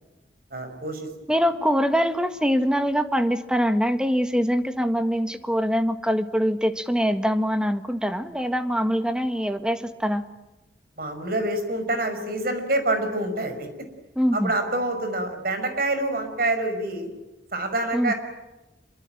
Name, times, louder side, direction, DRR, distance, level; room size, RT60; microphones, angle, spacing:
voice 1, 0.5-1.1 11.0-13.7 14.3-17.1 17.5-18.1, right 2 dB, 55° right, 7 dB, 5.7 m, -26 dB
voice 2, 1.3-10.2 14.2-14.5 17.9-18.1, equal, 5° right, 9 dB, 1.6 m, -23 dB
27.0 x 24.0 x 9.1 m, 1.1 s
head